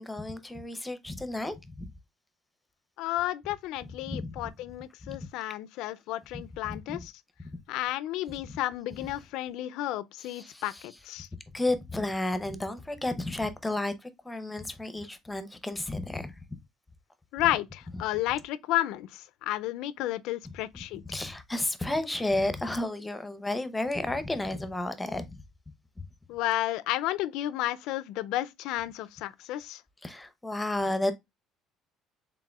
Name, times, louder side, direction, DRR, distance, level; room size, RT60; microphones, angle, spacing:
voice 1, 0.0-1.9 4.1-4.3 5.0-5.2 6.6-7.0 10.3-10.8 11.5-16.3 20.7-20.8 21.1-25.3 30.0-31.1, left 2 dB, 10° left, 0.6 m, -32 dB
voice 2, 3.0-7.1 7.7-11.3 17.3-21.0 26.3-29.8, left 15 dB, 80° left, 0.3 m, -32 dB
4.7 x 3.5 x 2.3 m
cardioid pair, 110°, 0 cm